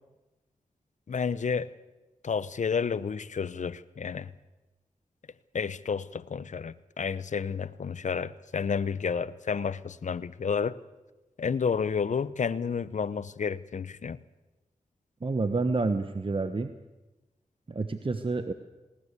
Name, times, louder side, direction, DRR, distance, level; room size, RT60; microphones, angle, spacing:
voice 1, 1.1-1.7 2.2-4.3 5.5-10.8 11.4-14.2, left 6 dB, 60° left, 17 dB, 0.8 m, -30 dB
voice 2, 15.2-16.7 17.7-18.5, right 3 dB, 40° right, 9 dB, 1.2 m, -29 dB
19.5 x 19.5 x 8.3 m, 1.1 s
cardioid pair, 45°, 14 cm